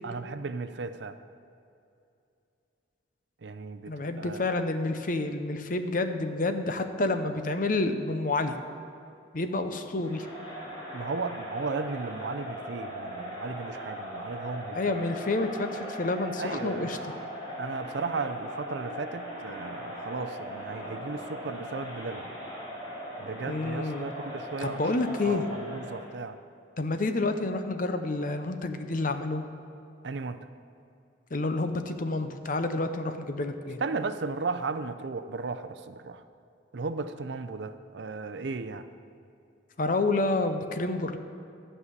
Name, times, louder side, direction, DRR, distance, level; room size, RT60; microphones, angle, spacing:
voice 1, 0.0-1.2 3.4-4.6 10.9-14.8 16.4-17.0 17.6-22.3 23.2-26.4 30.0-30.5 33.8-36.2 36.7-38.9, right 4 dB, 70° right, 11 dB, 0.5 m, -35 dB
voice 2, 3.9-8.6 9.3-10.3 14.7-17.0 23.5-24.1 24.6-25.5 26.8-29.4 31.3-33.8 39.8-41.2, left 2 dB, 45° left, 8 dB, 0.7 m, -29 dB
Crowd, 10.0-26.1, equal, 25° left, 3.3 m, -39 dB
12.0 x 5.6 x 8.2 m, 2.6 s
head